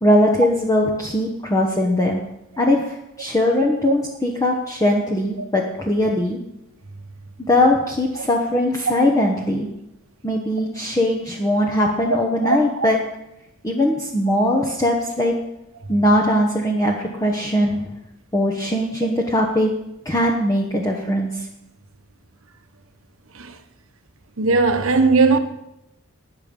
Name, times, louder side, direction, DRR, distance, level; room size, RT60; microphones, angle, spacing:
voice 1, 0.0-2.2 2.6-6.4 7.5-9.7 10.2-13.0 13.6-15.3 15.9-17.8 18.3-19.7 20.0-21.5, left 1 dB, 15° left, 1.1 m, -20 dB
voice 2, 12.4-12.9 23.4-23.5 24.4-25.4, right 4 dB, 70° right, 1.2 m, -18 dB
20.0 x 6.7 x 5.4 m
head